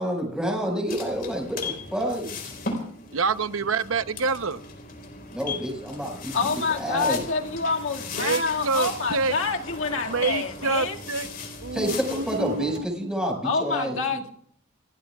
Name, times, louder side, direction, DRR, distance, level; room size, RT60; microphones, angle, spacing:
voice 1, 0.0-2.5 5.3-6.3 6.8-7.2 11.7-14.2, equal, 5° right, 5.3 m, -28 dB
sound 1, 0.9-12.8, left 4 dB, 45° left, 4.6 m, -37 dB
voice 2, 3.1-4.6 8.1-9.3 10.1-11.3 11.6-13.1, right 4 dB, 90° right, 0.8 m, -27 dB
voice 3, 6.3-11.0 13.4-14.3, left 4 dB, 70° left, 2.0 m, -27 dB
29.5 x 15.5 x 2.4 m
head